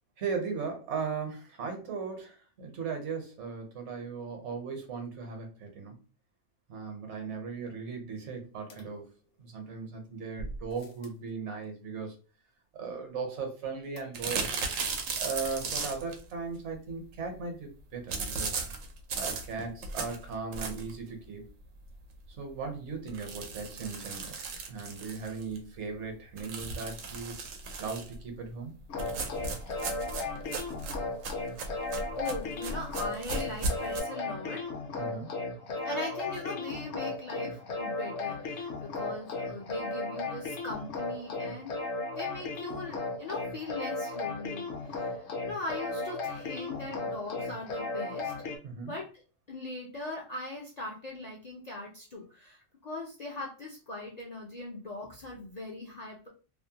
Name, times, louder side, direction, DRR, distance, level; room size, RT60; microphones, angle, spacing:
voice 1, 0.2-5.9 6.7-9.1 9.4-12.1 12.7-14.5 15.2-18.6 19.1-21.5 22.4-24.4 24.7-27.4 27.8-28.7 35.0-35.3 48.6-48.9, right 5 dB, 65° right, 3 dB, 1.0 m, -37 dB
sound 1, 8.7-9.7 10.4-11.3 14.0-14.5 14.8-14.9 15.2-15.3, right 1 dB, 90° left, 1.0 m, -46 dB
sound 2, 14.1-16.2 18.1-21.0 21.5-21.6 21.9-22.0 22.3-22.4 23.1-25.6 26.4-28.2 29.0-34.0, right 4 dB, 90° right, 1.0 m, -36 dB
sound 3, 28.9-48.6, left 3 dB, 65° left, 0.9 m, -36 dB
voice 2, 32.2-34.7 35.8-41.8 42.2-48.3 48.8-49.2 49.5-56.3, left 2 dB, 50° left, -2 dB, 0.5 m, -40 dB
2.6 x 2.1 x 2.7 m, 0.35 s
omnidirectional pair, 1.3 m